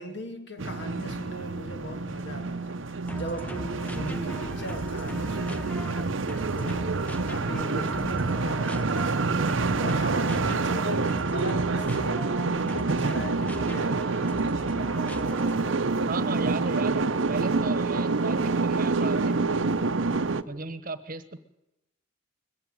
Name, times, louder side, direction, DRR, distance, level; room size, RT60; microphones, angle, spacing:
voice 1, 0.0-6.1 6.5-9.5 9.8-14.3, equal, 60° left, 6 dB, 2.7 m, -39 dB
sound 1, 0.6-20.4, right 3 dB, 75° right, 0.8 m, -27 dB
sound 2, 3.1-15.8, equal, 10° left, 0.8 m, -40 dB
voice 2, 16.1-19.6 20.4-21.4, right 3 dB, 45° right, 13 dB, 1.2 m, -35 dB
21.0 x 15.0 x 9.2 m, 0.90 s
head